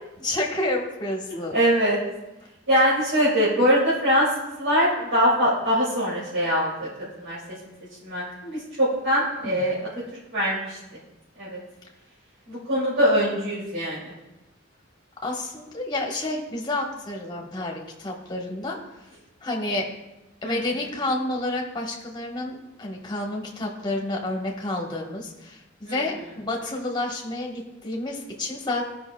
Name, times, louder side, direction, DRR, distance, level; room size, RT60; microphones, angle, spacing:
voice 1, 0.2-1.5 9.3-9.7 15.2-18.8 19.4-19.9 20.4-28.9, left 2 dB, 20° left, -1 dB, 1.2 m, -30 dB
voice 2, 1.3-2.0 2.7-6.9 7.2-7.4 8.0-9.8 10.3-10.8 11.4-11.6 12.5-14.1 20.4-20.6 25.9-26.0, equal, 85° right, -11 dB, 2.7 m, -22 dB
15.0 x 5.6 x 2.3 m, 0.98 s
head